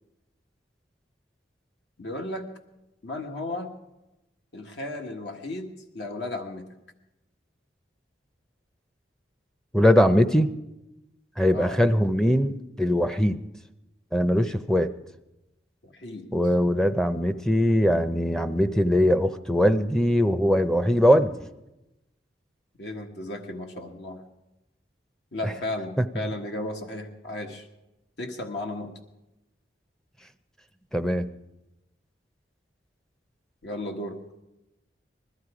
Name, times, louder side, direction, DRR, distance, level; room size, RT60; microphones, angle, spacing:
voice 1, 2.0-2.5 3.0-3.7 4.5-5.7 5.9-6.6 11.5-11.8 14.3-14.4 15.8-16.3 22.8-24.2 25.3-27.7 28.2-28.9 33.6-34.2, left 1 dB, 70° left, 3 dB, 1.5 m, -34 dB
voice 2, 9.7-10.5 11.4-13.4 14.1-14.9 16.3-21.5 26.0-26.1 30.9-31.3, equal, 5° left, 10 dB, 0.5 m, -21 dB
20.5 x 14.0 x 4.9 m, 0.95 s
head